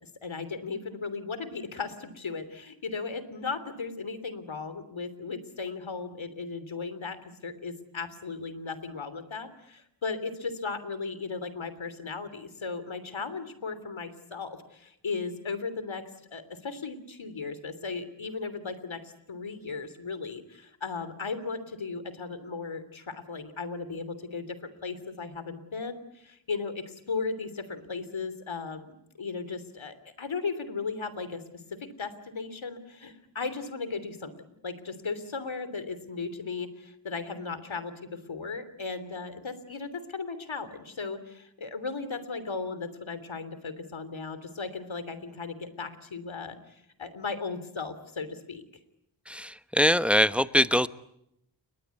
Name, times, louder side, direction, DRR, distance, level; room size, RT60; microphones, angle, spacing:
voice 1, 0.0-7.2 7.4-16.0 16.3-31.4 31.8-34.3 34.6-48.6, left 4 dB, 90° left, 13 dB, 3.2 m, -36 dB
voice 2, 49.3-50.9, equal, 5° right, 13 dB, 1.1 m, -23 dB
30.0 x 22.5 x 8.4 m, 0.79 s
wide cardioid pair, 45°, 46 cm